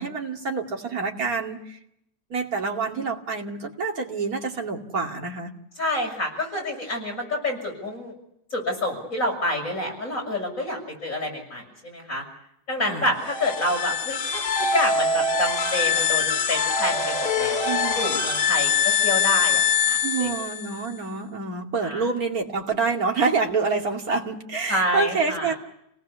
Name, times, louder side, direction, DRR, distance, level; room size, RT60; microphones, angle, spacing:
voice 1, 0.0-1.8 2.3-5.5 12.8-13.1 17.6-18.1 20.0-25.5, right 4 dB, 60° right, 1 dB, 3.0 m, -27 dB
voice 2, 5.8-8.1 8.5-12.2 12.7-18.7 19.0-20.3 21.8-22.0 24.7-25.5, left 1 dB, 50° left, 1 dB, 7.3 m, -28 dB
sound 1, 13.2-20.9, left 5 dB, 75° left, 2.9 m, -24 dB
29.5 x 18.5 x 7.0 m, 0.77 s
omnidirectional pair, 1.8 m